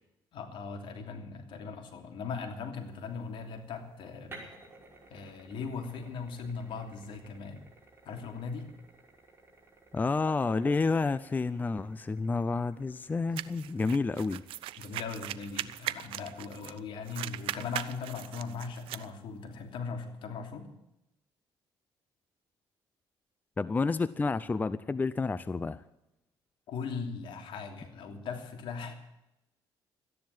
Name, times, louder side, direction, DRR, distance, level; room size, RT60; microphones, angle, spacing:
voice 1, 0.3-4.4 5.1-7.6 8.0-8.7 14.8-20.7 26.7-28.9, left 5 dB, 70° left, 4 dB, 3.0 m, -39 dB
sound 1, 2.8-19.7, right 2 dB, 25° right, 5.3 m, -58 dB
voice 2, 9.9-14.4 23.6-25.8, left 4 dB, 20° left, 15 dB, 0.5 m, -30 dB
sound 2, 13.4-16.8 17.1-19.1, right 14 dB, 80° right, 0.6 m, -39 dB
13.5 x 10.5 x 9.4 m, 0.89 s
cardioid pair, 100°, 9 cm